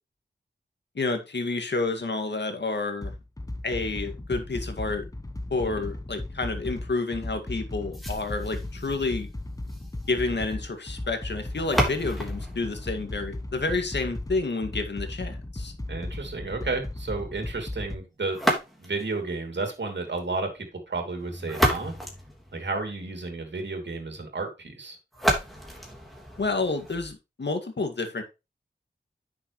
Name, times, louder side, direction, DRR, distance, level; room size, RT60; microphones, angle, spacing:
voice 1, 1.0-3.1 3.6-5.1 5.5-9.3 10.1-15.7 26.4-28.2, left 3 dB, 70° left, 2.0 m, -29 dB
sound 1, 3.0-18.0, left 1 dB, 20° left, 1.0 m, -36 dB
sound 2, 7.9-13.9 18.3-19.2 21.2-23.1 25.1-27.1, equal, ahead, 3.5 m, -31 dB
voice 2, 15.9-18.4 18.8-21.9 22.5-25.0, right 3 dB, 75° right, 2.8 m, -32 dB
10.0 x 6.8 x 3.2 m
wide cardioid pair, 70°, 18 cm